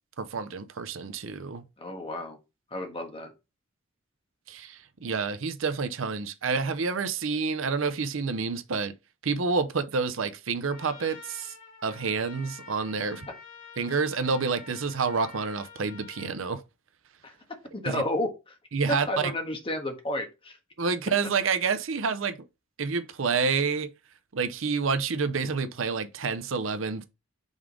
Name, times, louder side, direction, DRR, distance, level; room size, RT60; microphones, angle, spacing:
voice 1, 0.2-1.6 4.5-8.9 9.2-11.5 11.8-13.3 13.8-16.6 17.9-18.0 18.7-19.3 20.8-22.4 22.8-23.9 24.3-27.0, right 5 dB, 75° right, 0.6 m, -28 dB
voice 2, 1.8-2.4 2.7-3.3 17.2-17.3 17.7-18.5 19.1-20.6, left 1 dB, 30° left, 1.4 m, -32 dB
Trumpet, 10.7-16.4, left 6 dB, 50° left, 3.1 m, -48 dB
5.4 x 3.8 x 4.8 m
head